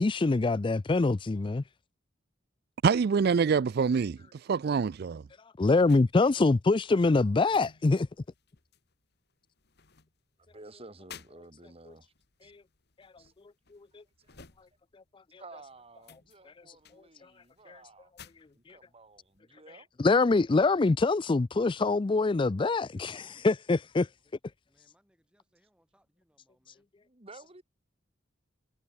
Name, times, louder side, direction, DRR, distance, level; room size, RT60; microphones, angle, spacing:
voice 1, 0.0-1.6 5.6-8.1 13.9-14.0 20.0-24.1, left 3 dB, 25° left, 0.4 m, -24 dB
voice 2, 2.8-5.2, right 5 dB, 55° right, 0.4 m, -26 dB
sound 1, 5.7-15.1 15.4-19.4, left 6 dB, 55° left, 1.8 m, -56 dB
voice 3, 10.4-12.1 12.4-12.5 13.2-13.3 13.7-13.8 14.2-14.4 15.4-18.1 18.5-19.9 27.0-27.6, right 2 dB, 30° right, 2.4 m, -52 dB
voice 4, 24.7-26.9, equal, 5° right, 7.3 m, -71 dB
head